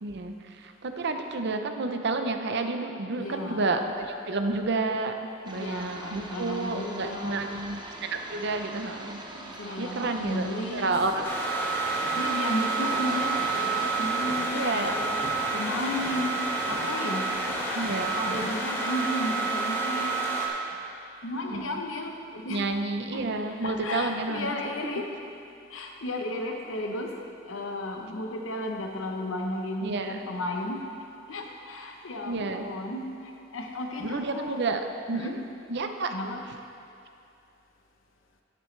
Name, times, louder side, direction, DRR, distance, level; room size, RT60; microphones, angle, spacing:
voice 1, 0.0-5.2 5.4-7.8 8.1-9.2 9.8-11.2 14.5-15.0 17.7-18.1 21.3-21.7 22.5-24.6 29.8-30.2 32.2-32.6 34.0-35.4 35.7-36.1, right 3 dB, 60° right, 6 dB, 0.7 m, -30 dB
voice 2, 3.2-3.7 5.5-7.6 9.3-10.9 12.1-15.2 15.5-17.3 18.1-20.2 21.2-22.8 23.1-23.2 23.6-25.1 25.7-27.2 27.5-30.9 31.3-34.6 35.1-35.3 36.1-36.4, left 1 dB, 80° left, 3 dB, 0.9 m, -34 dB
sound 1, 5.4-14.1, right 1 dB, 20° right, 0.8 m, -42 dB
sound 2, 10.6-19.2, right 1 dB, 90° right, 1.8 m, -43 dB
sound 3, 11.2-20.5, right 3 dB, 10° left, 1.2 m, -29 dB
11.0 x 10.0 x 3.3 m, 2.6 s
head